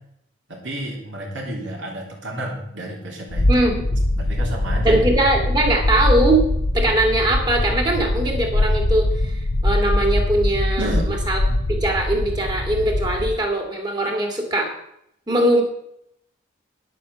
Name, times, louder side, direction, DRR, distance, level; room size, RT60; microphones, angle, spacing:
voice 1, 0.5-3.6 4.2-5.1 10.8-11.1 11.5-11.7, right 1 dB, 70° right, -2 dB, 3.3 m, -30 dB
sound 1, 3.3-13.3, left 1 dB, 70° left, 0.9 m, -22 dB
voice 2, 3.5-3.8 4.8-6.4 6.7-9.3 9.6-10.9 11.3-11.4 11.7-14.7 15.3-15.6, right 1 dB, 20° right, 2 dB, 2.4 m, -20 dB
10.0 x 8.4 x 7.0 m, 0.76 s
head